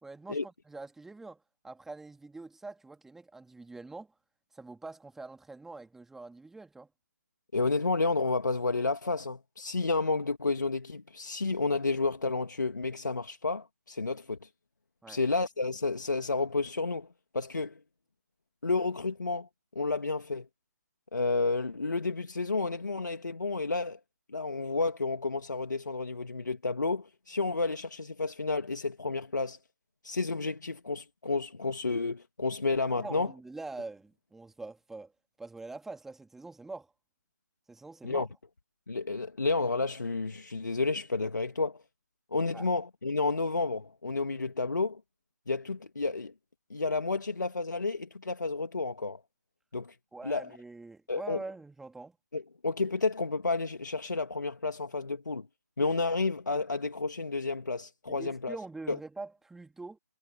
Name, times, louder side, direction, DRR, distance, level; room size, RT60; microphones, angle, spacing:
voice 1, 0.0-4.1 4.5-6.9 15.0-15.2 33.0-35.1 35.4-36.9 37.7-38.3 42.5-42.7 50.1-52.2 58.1-60.0, right 3 dB, 5° right, 2.5 m, -44 dB
voice 2, 7.5-14.5 15.1-17.1 17.3-17.8 18.6-19.5 19.7-20.5 21.1-24.0 24.3-29.6 30.0-33.3 38.0-38.3 38.9-41.8 42.3-45.0 45.5-46.3 46.7-49.2 49.7-49.9 50.2-50.5 51.1-51.4 52.3-55.5 55.8-58.6 58.9-59.0, left 3 dB, 80° left, 2.5 m, -31 dB
figure-of-eight pair, 145°, 10 cm